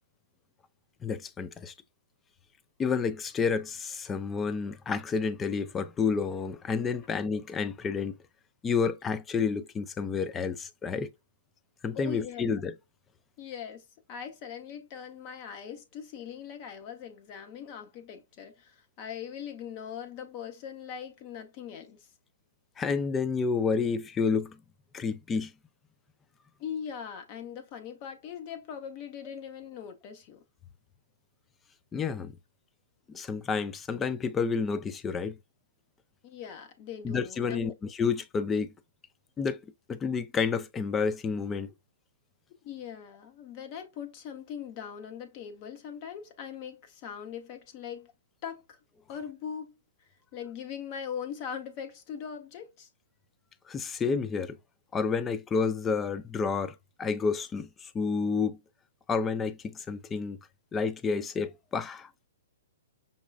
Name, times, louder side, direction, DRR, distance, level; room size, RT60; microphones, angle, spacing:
voice 1, 1.0-1.7 2.8-8.2 8.6-11.1 11.8-12.7 22.8-24.6 24.9-25.5 31.9-32.3 33.1-35.4 37.0-38.7 39.4-39.6 39.9-41.7 53.7-54.6 54.9-58.6 59.1-60.4 60.7-62.1, left 5 dB, 15° left, 0.3 m, -30 dB
voice 2, 11.9-12.5 13.4-22.1 26.6-30.4 36.2-37.8 42.6-48.1 48.4-48.8 49.1-49.8 50.3-52.9, left 8 dB, 40° left, 0.7 m, -41 dB
5.3 x 2.3 x 2.3 m
hypercardioid pair, 125°, 0 cm